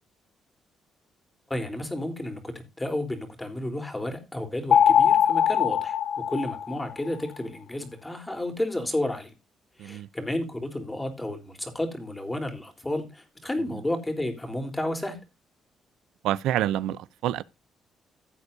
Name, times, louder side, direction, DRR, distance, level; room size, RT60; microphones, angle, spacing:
voice 1, 1.5-9.3 9.8-15.2, left 1 dB, 15° left, 3.8 m, -32 dB
sound 1, 4.7-7.2, left 8 dB, 65° left, 0.7 m, -21 dB
voice 2, 16.2-17.4, right 12 dB, 90° right, 0.5 m, -28 dB
15.5 x 8.2 x 2.7 m
cardioid pair, 90°, 0 cm